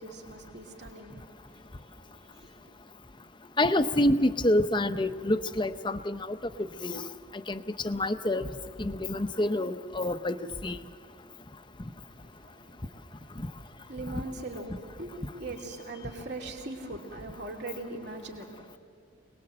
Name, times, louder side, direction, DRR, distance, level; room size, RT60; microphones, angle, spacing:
voice 1, 0.0-2.7 12.1-18.8, right 2 dB, 55° right, 0 dB, 2.8 m, -42 dB
voice 2, 3.6-6.4 6.8-7.0 7.5-8.5 8.8-10.3 10.6-10.8, left 1 dB, 25° left, 10 dB, 0.7 m, -27 dB
26.5 x 20.0 x 7.7 m, 2.2 s
head